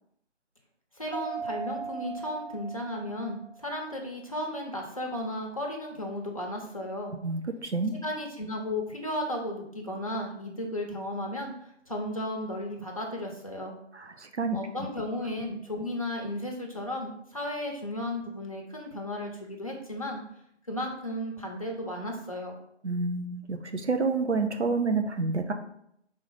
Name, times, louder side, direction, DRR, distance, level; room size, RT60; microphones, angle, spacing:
voice 1, 0.9-7.1 8.0-13.8 14.5-20.2 20.7-22.6, left 1 dB, 30° left, 0 dB, 0.8 m, -34 dB
Mallet percussion, 1.1-3.6, right 4 dB, 35° right, 0.6 m, -39 dB
voice 2, 7.2-7.9 14.4-14.6 22.8-25.5, right 4 dB, 70° right, 6 dB, 0.9 m, -28 dB
4.7 x 3.7 x 5.5 m, 0.73 s
figure-of-eight pair, 165°, 36 cm